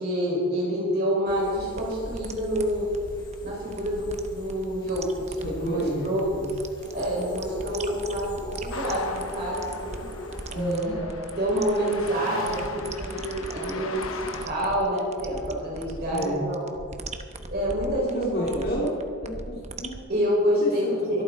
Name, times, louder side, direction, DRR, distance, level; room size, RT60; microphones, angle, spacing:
voice 1, 0.0-2.9 3.4-6.2 6.9-10.0 10.5-11.0 11.4-16.6 17.5-18.5 20.1-21.2, equal, 50° right, -5 dB, 5.5 m, -27 dB
sound 1, 1.3-10.8, equal, 20° left, 2.6 m, -41 dB
sound 2, 1.6-20.0, right 2 dB, 35° right, 1.0 m, -40 dB
voice 2, 5.4-6.5 10.5-10.9 16.1-16.4 18.1-18.9 19.2-20.0 20.6-21.2, equal, 50° left, -4 dB, 2.8 m, -31 dB
sound 3, 8.7-14.5, left 3 dB, 70° left, 1.2 m, -38 dB
23.0 x 13.5 x 4.1 m, 2.1 s
head